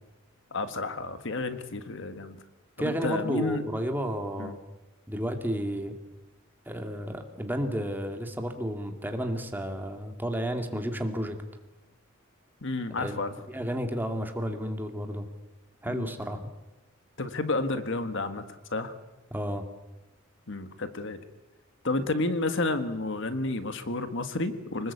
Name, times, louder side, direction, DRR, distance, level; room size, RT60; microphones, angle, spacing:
voice 1, 0.5-2.4 2.8-3.6 4.4-4.5 12.6-13.3 15.8-16.1 17.2-18.4 18.7-18.9 20.5-21.2 21.8-24.9, left 2 dB, 60° left, 10 dB, 1.6 m, -31 dB
voice 2, 2.8-4.6 5.1-5.9 6.7-11.4 13.0-15.3 15.8-16.4 19.3-19.6, equal, 10° right, 5 dB, 2.3 m, -32 dB
25.0 x 20.0 x 8.5 m, 1.1 s
head